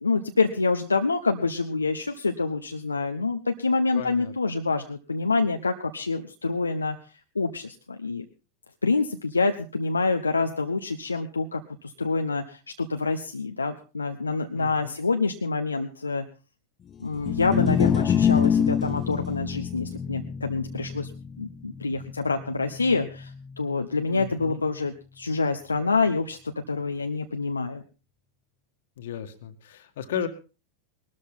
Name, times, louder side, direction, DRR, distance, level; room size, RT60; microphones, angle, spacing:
voice 1, 0.0-7.0 7.3-8.2 8.8-16.2 17.0-21.1 21.4-23.3 23.6-27.8, left 3 dB, 80° left, 5 dB, 0.9 m, -27 dB
voice 2, 3.9-4.3 14.5-15.0 24.1-24.7 29.0-30.3, left 9 dB, 60° left, 9 dB, 1.8 m, -35 dB
sound 1, 17.1-23.5, left 8 dB, 25° left, 0.8 m, -26 dB
20.0 x 13.0 x 3.8 m, 0.33 s
figure-of-eight pair, 90°, 0 cm